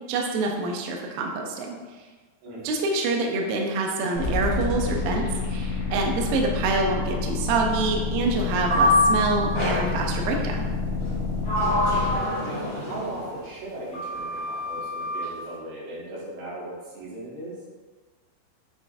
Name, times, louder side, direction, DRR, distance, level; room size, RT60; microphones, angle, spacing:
voice 1, 0.1-1.8 2.6-10.7, right 3 dB, 85° right, 1 dB, 2.1 m, -26 dB
voice 2, 2.4-2.8 11.5-12.0 12.2-17.6, right 1 dB, 70° right, -7 dB, 3.7 m, -38 dB
sound 1, 4.1-12.2, left 4 dB, 70° left, 1.4 m, -28 dB
sound 2, 8.7-10.0, left 1 dB, 50° right, 2.1 m, -22 dB
Sliding door, 9.5-10.0 11.0-13.4 13.9-15.3, left 1 dB, 45° left, 2.5 m, -28 dB
7.8 x 4.8 x 2.6 m, 1.3 s
omnidirectional pair, 5.0 m